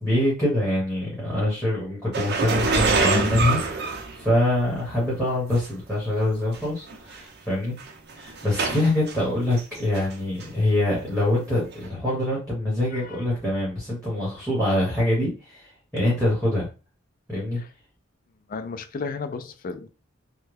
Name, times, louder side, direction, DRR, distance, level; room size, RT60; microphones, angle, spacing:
voice 1, 0.0-7.8 8.2-16.7 17.3-17.6, left 1 dB, ahead, 1.3 m, -25 dB
sound 1, 2.1-4.7 5.5-5.7 6.5-6.6 6.9-7.2 7.8-9.2 9.6-10.1 10.4-10.5 11.7-11.8, right 3 dB, 55° right, 0.6 m, -25 dB
voice 2, 12.9-13.3 17.6-17.7 18.5-19.9, left 4 dB, 45° left, 0.4 m, -34 dB
3.3 x 2.2 x 3.3 m
head